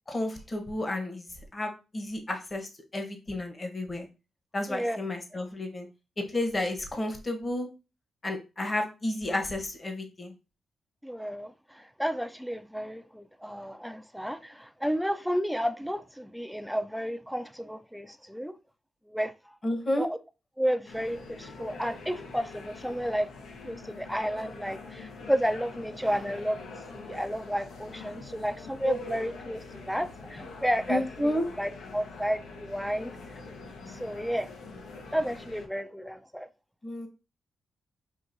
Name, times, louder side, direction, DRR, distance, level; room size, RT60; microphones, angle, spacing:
voice 1, 0.1-1.2 1.5-4.1 4.5-5.9 6.2-7.7 8.2-10.3 19.6-20.1 30.9-31.5 36.8-37.1, left 1 dB, 30° left, 1.0 m, -31 dB
voice 2, 11.0-18.5 19.1-19.3 19.7-20.2 20.6-23.3 23.6-26.6 26.9-33.1 33.9-34.5 35.1-36.5, equal, ahead, 0.4 m, -32 dB
sound 1, 20.9-35.7, left 3 dB, 85° left, 0.8 m, -43 dB
5.9 x 2.7 x 2.6 m
cardioid pair, 80°, 0 cm